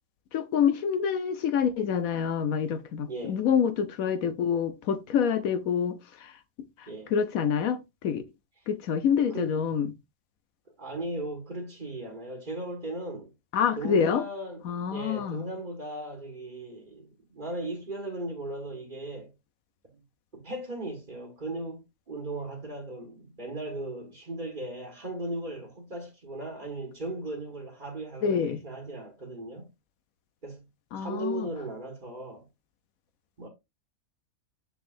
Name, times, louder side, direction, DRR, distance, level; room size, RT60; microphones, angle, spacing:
voice 1, 0.3-6.4 6.8-8.2 8.7-9.9 13.5-14.2 14.6-15.5 28.2-28.6 30.9-31.5, left 7 dB, 75° left, 1.1 m, -27 dB
voice 2, 3.1-3.4 6.9-7.1 8.6-8.7 9.3-9.5 10.8-13.3 13.8-19.3 19.9-20.0 20.3-29.7 30.4-30.7 31.0-32.5 33.4-33.5, right 1 dB, 35° right, 1.6 m, -37 dB
7.1 x 6.3 x 2.5 m
omnidirectional pair, 1.5 m